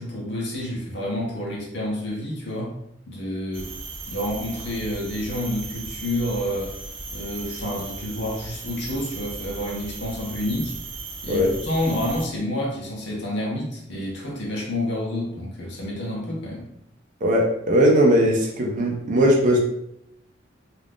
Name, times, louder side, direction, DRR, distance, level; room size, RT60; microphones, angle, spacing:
voice 1, 0.0-2.8 3.1-3.7 4.1-6.8 7.1-10.8 11.2-16.7, left 1 dB, 65° left, -3 dB, 0.7 m, -29 dB
sound 1, 3.5-12.3, right 3 dB, 90° right, 0.6 m, -36 dB
voice 2, 17.2-19.6, equal, 45° right, -1 dB, 0.5 m, -19 dB
2.4 x 2.4 x 3.5 m, 0.76 s
head